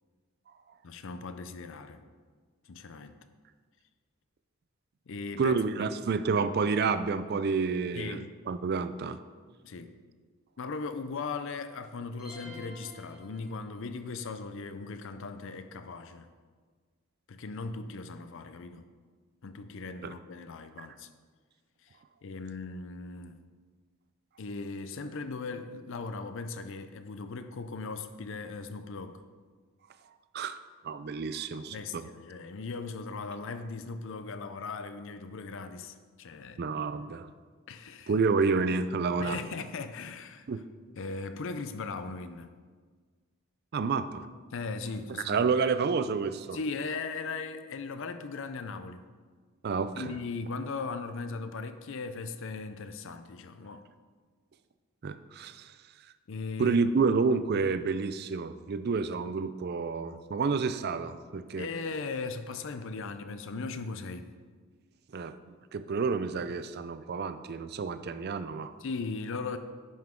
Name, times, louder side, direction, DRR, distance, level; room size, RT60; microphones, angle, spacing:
voice 1, 0.8-2.0 2.7-3.2 5.1-5.9 7.9-8.3 9.6-10.0 10.6-16.3 17.3-18.9 19.4-21.1 21.8-23.4 24.4-29.2 31.5-36.6 37.7-38.2 39.2-40.5 40.9-42.5 44.5-45.5 46.5-49.0 49.9-53.8 56.3-57.2 61.6-64.3 68.8-69.6, left 4 dB, 55° left, 10 dB, 0.5 m, -38 dB
voice 2, 5.4-9.2 20.0-20.1 30.3-30.6 30.8-32.1 36.6-37.3 38.1-39.4 40.5-40.6 43.7-44.3 45.3-46.6 49.6-50.1 55.0-55.7 56.6-61.7 65.1-65.3 65.7-68.7, right 4 dB, 45° right, 12 dB, 0.4 m, -29 dB
sound 1, 12.2-14.0, left 1 dB, 5° right, 1.6 m, -49 dB
10.5 x 5.8 x 3.7 m, 1.5 s
head